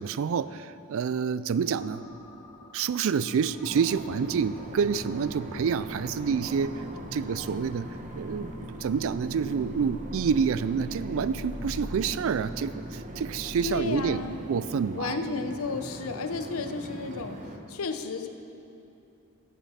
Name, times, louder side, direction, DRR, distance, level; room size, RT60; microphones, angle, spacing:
voice 1, 0.0-2.0 2.7-6.8 7.1-14.2 14.5-15.2, right 6 dB, 65° right, 16 dB, 0.3 m, -28 dB
sound 1, 1.6-13.9, equal, 15° left, 1.7 m, -46 dB
sound 2, 3.7-17.6, right 1 dB, 35° right, 0.9 m, -40 dB
voice 2, 13.6-14.4 14.9-18.3, left 4 dB, 70° left, 7 dB, 0.7 m, -33 dB
14.5 x 7.4 x 5.6 m, 2.8 s
head